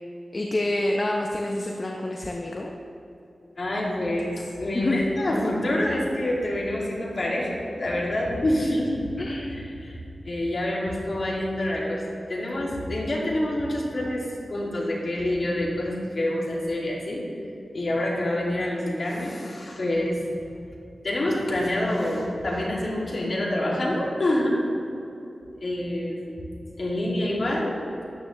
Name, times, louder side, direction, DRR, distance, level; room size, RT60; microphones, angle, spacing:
voice 1, 0.3-2.7 4.7-5.0 9.2-9.5, left 1 dB, 40° left, 0 dB, 0.8 m, -27 dB
voice 2, 3.6-9.1 9.5-10.0 10.2-12.0 12.3-17.2 17.7-20.2 21.0-24.6 25.6-26.3 26.8-27.8, left 1 dB, 55° left, -4 dB, 2.5 m, -27 dB
13.0 x 9.6 x 3.2 m, 2.8 s
wide cardioid pair, 90°, 0 cm